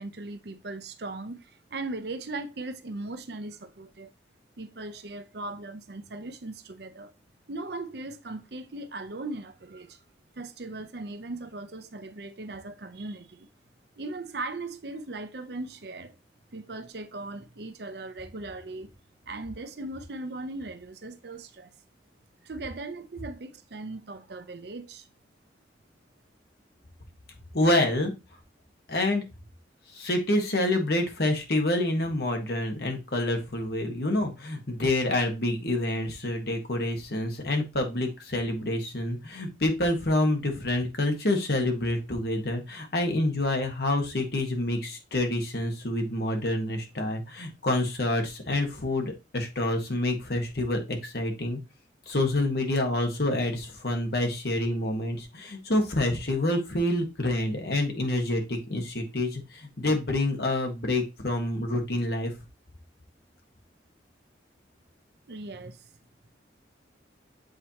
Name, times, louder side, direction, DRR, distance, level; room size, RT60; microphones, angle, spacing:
voice 1, 0.0-4.1 4.6-7.1 7.5-10.0 10.4-13.5 14.0-16.2 16.5-18.9 19.3-21.7 22.4-25.1 65.3-65.9, right 2 dB, 60° right, 0.7 m, -38 dB
voice 2, 27.5-28.1 28.9-29.2 29.9-51.6 52.1-62.3, left 1 dB, 60° left, 1.5 m, -27 dB
7.9 x 4.4 x 2.9 m
head